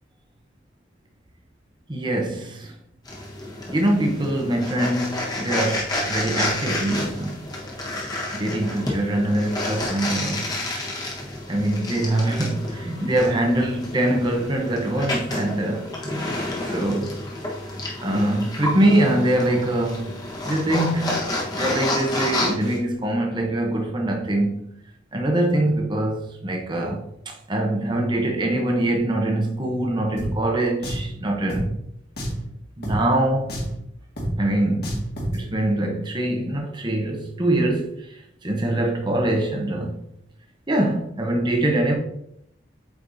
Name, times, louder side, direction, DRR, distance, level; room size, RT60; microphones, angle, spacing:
voice 1, 1.9-2.7 3.7-7.4 8.3-10.5 11.5-16.2 16.7-17.1 18.0-20.2 20.4-21.1 21.5-24.7 25.1-31.7 32.8-33.5 34.4-35.0 35.3-40.0 40.7-41.9, right 1 dB, 25° right, 0.9 m, -23 dB
sound 1, 3.0-22.8, left 1 dB, 20° left, 1.2 m, -30 dB
Drum, 30.2-30.3 30.8-31.1 31.5-31.6 32.2-32.4 32.8-33.0 33.5-33.8 34.2-34.3 34.8-35.4, equal, 55° left, 1.9 m, -28 dB
8.2 x 4.7 x 2.7 m
head